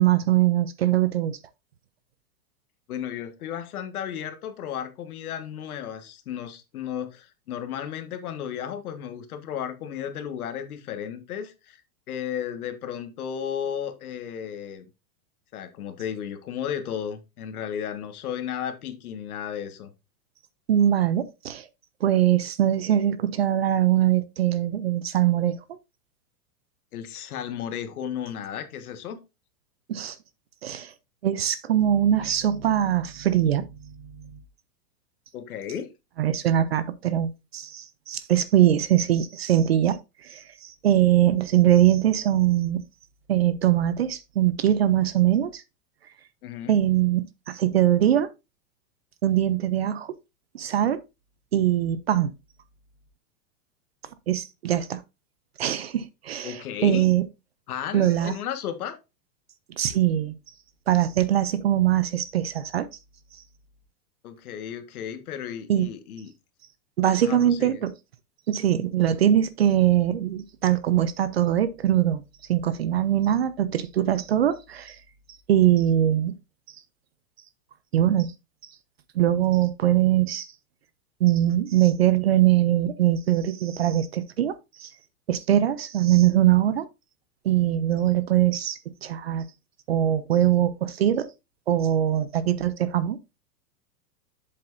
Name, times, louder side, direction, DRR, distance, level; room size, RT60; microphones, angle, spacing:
voice 1, 0.0-1.4 20.7-21.7 22.0-25.6 29.9-30.2 30.6-30.9 31.2-34.3 36.2-42.8 43.3-45.6 46.7-48.3 49.2-50.1 50.5-51.0 51.5-52.3 54.3-55.0 55.6-57.3 57.9-58.3 59.8-60.3 60.9-62.9 65.7-65.9 67.0-67.9 68.5-72.2 72.5-75.0 75.5-76.3 77.9-78.3 79.2-80.5 81.2-84.9 85.3-86.9 87.4-89.5 89.9-91.3 91.7-93.2, right 11 dB, 45° right, 0.4 m, -22 dB
voice 2, 2.9-11.8 12.1-14.8 15.5-19.9 26.9-29.2 32.2-32.4 35.3-35.9 46.4-46.8 56.4-57.1 57.7-59.0 64.2-66.3 67.2-67.8, left 9 dB, 65° left, 1.6 m, -34 dB
7.8 x 7.5 x 2.6 m
supercardioid pair, 180°, 46 cm